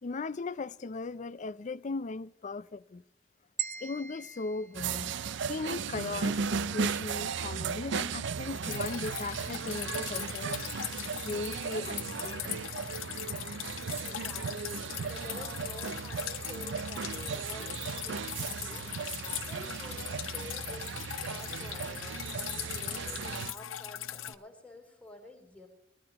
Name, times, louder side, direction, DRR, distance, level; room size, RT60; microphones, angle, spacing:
voice 1, 0.0-3.0 3.8-5.1 5.5-10.7 11.2-12.6, left 3 dB, 40° left, 0.5 m, -38 dB
sound 1, 3.6-5.8, right 8 dB, 40° right, 1.0 m, -41 dB
sound 2, 4.7-23.5, right 6 dB, 65° right, 0.4 m, -36 dB
Drip, 8.6-24.3, left 12 dB, 85° left, 0.8 m, -40 dB
voice 2, 14.0-20.9 21.3-25.7, left 2 dB, 10° left, 3.6 m, -50 dB
22.0 x 13.5 x 3.0 m
head